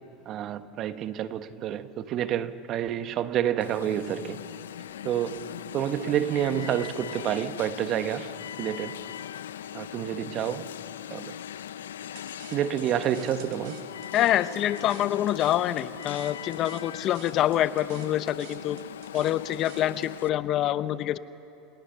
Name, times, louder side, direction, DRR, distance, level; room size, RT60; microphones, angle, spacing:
voice 1, 0.3-4.4 5.0-8.3 8.6-9.0 9.7-10.6 11.1-11.3 12.5-13.8, right 10 dB, 45° right, 1.3 m, -29 dB
Alarm, 3.6-20.3, left 10 dB, 90° left, 0.6 m, -40 dB
sound 1, 12.2-20.1, right 11 dB, 65° right, 3.0 m, -51 dB
voice 2, 14.1-18.8 19.1-21.2, left 12 dB, 45° left, 0.8 m, -26 dB
29.0 x 28.0 x 7.0 m
hypercardioid pair, 100°, 0 cm